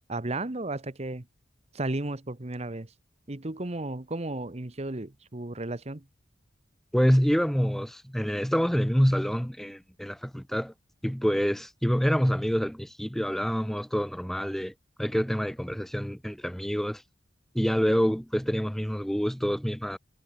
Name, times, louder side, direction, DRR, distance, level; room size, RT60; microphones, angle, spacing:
voice 1, 0.1-1.3 1.7-2.9 3.3-6.0, right 2 dB, 35° right, 1.1 m, -34 dB
voice 2, 6.9-10.7 11.0-14.7 15.0-17.0 17.5-20.0, equal, ahead, 0.7 m, -26 dB
head